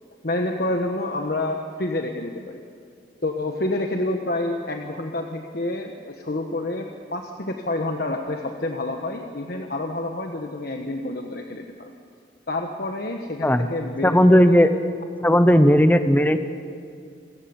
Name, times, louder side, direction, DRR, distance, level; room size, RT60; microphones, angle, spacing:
voice 1, 0.2-2.6 3.2-11.9 12.5-14.6, left 2 dB, 60° left, 3 dB, 1.3 m, -28 dB
voice 2, 14.0-14.7 15.2-16.4, equal, 10° left, 9 dB, 0.9 m, -15 dB
28.5 x 17.0 x 7.1 m, 2.3 s
head